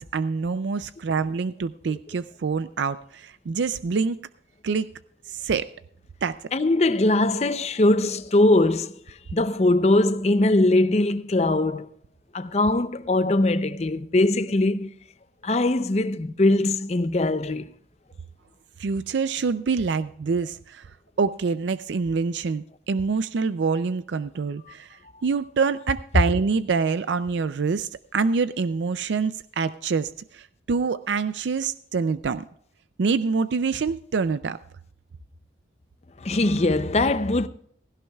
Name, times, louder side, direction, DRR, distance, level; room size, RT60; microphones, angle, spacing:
voice 1, 0.0-4.2 4.6-4.9 5.3-5.7 6.2-6.4 18.8-20.9 21.2-32.4 33.0-34.6, right 5 dB, 80° right, 0.4 m, -26 dB
voice 2, 6.5-11.9 12.3-14.9 15.4-17.7 36.2-37.5, left 2 dB, 35° left, 0.6 m, -21 dB
17.0 x 15.5 x 2.3 m
head